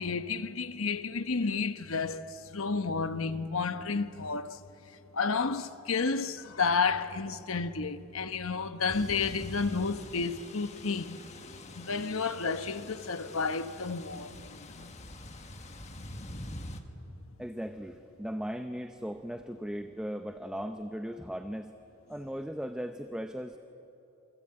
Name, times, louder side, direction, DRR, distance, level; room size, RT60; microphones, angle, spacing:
voice 1, 0.0-4.6 5.1-11.2 11.7-15.0, left 4 dB, 75° left, 1.1 m, -31 dB
sound 1, 8.9-16.8, left 1 dB, 30° left, 1.6 m, -46 dB
voice 2, 17.4-21.8 22.1-23.6, equal, 5° right, 0.7 m, -38 dB
28.0 x 24.0 x 8.8 m
head